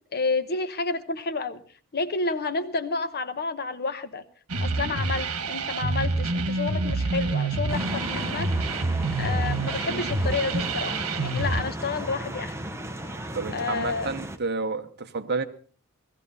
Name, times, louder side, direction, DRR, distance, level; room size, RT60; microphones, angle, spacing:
voice 1, 0.1-1.6 1.9-4.2 4.6-8.5 9.2-12.5 13.5-14.1, left 3 dB, 45° left, 1.0 m, -30 dB
sound 1, 4.5-11.6, right 3 dB, 85° right, 1.3 m, -27 dB
sound 2, 7.7-14.4, right 1 dB, 10° right, 0.8 m, -35 dB
voice 2, 13.3-15.4, right 4 dB, 50° right, 1.0 m, -30 dB
16.5 x 15.0 x 4.0 m
head